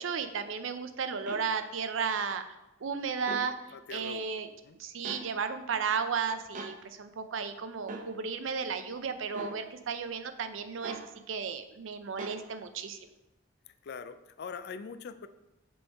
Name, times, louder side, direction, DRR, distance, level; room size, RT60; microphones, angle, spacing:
voice 1, 0.0-2.4 2.8-3.5 3.9-4.5 4.8-11.0 11.3-13.1, right 6 dB, 75° right, 10 dB, 0.5 m, -34 dB
sound 1, 1.3-1.4 3.2-3.5 5.0-5.2 6.5-6.7 7.9-8.1 9.3-9.6 10.8-11.1 12.2-12.4, right 2 dB, 40° right, 0.8 m, -40 dB
voice 2, 3.7-4.8 13.7-15.3, left 5 dB, 55° left, 12 dB, 0.4 m, -43 dB
5.4 x 4.3 x 4.6 m, 0.94 s
head